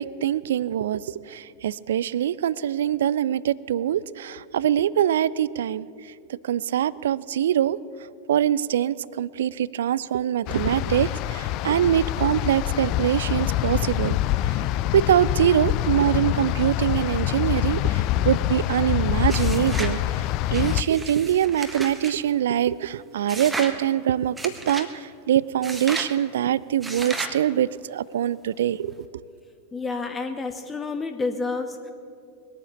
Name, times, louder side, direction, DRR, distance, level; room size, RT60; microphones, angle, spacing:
voice 1, 0.0-5.9 6.3-7.8 8.3-14.2 14.9-20.2 20.5-24.9 25.3-28.9, right 10 dB, 60° right, 21 dB, 0.4 m, -23 dB
sound 1, 10.5-20.8, left 14 dB, 40° left, 0.4 m, -25 dB
sound 2, 19.3-20.0 20.5-22.1 23.3-23.8 24.4-24.9 25.6-26.1 26.8-27.4, right 2 dB, 10° right, 1.4 m, -33 dB
voice 2, 29.7-31.9, left 3 dB, 15° left, 6 dB, 0.9 m, -29 dB
21.5 x 8.8 x 7.2 m, 2.4 s
figure-of-eight pair, 90°, 0 cm